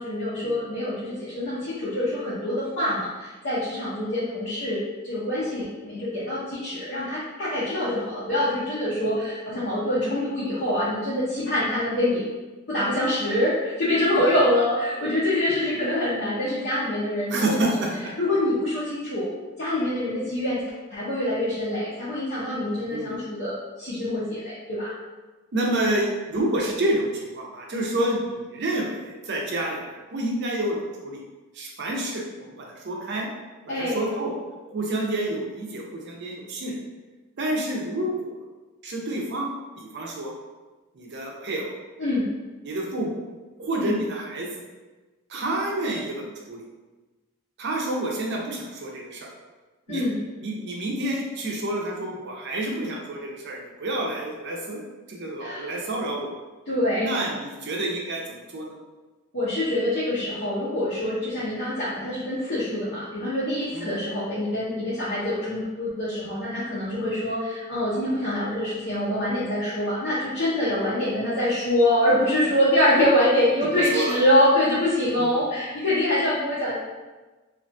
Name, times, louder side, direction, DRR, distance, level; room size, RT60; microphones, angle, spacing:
voice 1, 0.0-12.2 12.7-17.8 18.2-19.3 19.6-20.6 20.9-24.9 33.7-34.1 42.0-42.3 43.8-43.9 49.9-50.1 55.4-55.7 56.7-57.2 59.3-76.7, left 1 dB, 55° left, -10 dB, 0.6 m, -25 dB
voice 2, 17.3-18.1 22.9-23.2 25.5-31.2 31.5-33.3 33.7-34.3 34.7-36.8 37.4-38.4 38.8-39.5 39.8-40.3 40.9-41.7 42.6-43.2 43.6-44.5 45.3-46.6 47.6-49.3 49.9-50.0 50.4-56.3 57.0-58.7 63.7-64.0 73.8-74.1 75.2-75.5, right 1 dB, 55° right, -1 dB, 0.5 m, -29 dB
2.5 x 2.3 x 2.5 m, 1.2 s
head